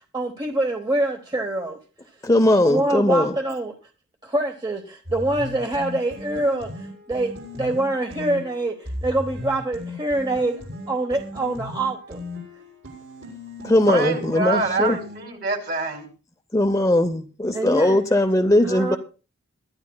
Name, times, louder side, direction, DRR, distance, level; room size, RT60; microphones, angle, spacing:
voice 1, 0.1-1.8 2.6-3.7 4.2-7.3 7.6-10.6 10.9-12.2 17.5-18.0 18.6-19.0, right 2 dB, 20° right, 4 dB, 0.9 m, -25 dB
voice 2, 2.2-3.3 13.6-15.0 16.5-19.0, left 1 dB, 15° left, 6 dB, 0.6 m, -19 dB
sound 1, 5.1-15.2, left 1 dB, 65° right, 6.9 m, -37 dB
voice 3, 13.9-16.1, right 3 dB, 45° right, 4 dB, 2.7 m, -25 dB
22.5 x 12.0 x 2.3 m, 0.35 s
head